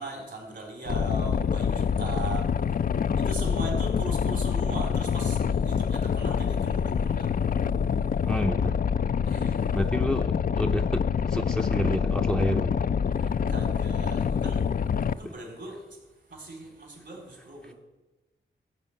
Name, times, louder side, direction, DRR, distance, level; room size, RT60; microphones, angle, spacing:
voice 1, 0.0-7.6 8.0-8.1 9.2-9.8 13.1-17.7, right 3 dB, 65° right, 3.9 m, -40 dB
Boat Water vehicle, 0.9-15.1, left 7 dB, 45° left, 0.4 m, -26 dB
voice 2, 8.3-8.8 9.7-12.9 15.2-15.3 17.6-17.7, equal, 5° left, 0.7 m, -29 dB
12.5 x 4.5 x 8.4 m
cardioid pair, 45°, 21 cm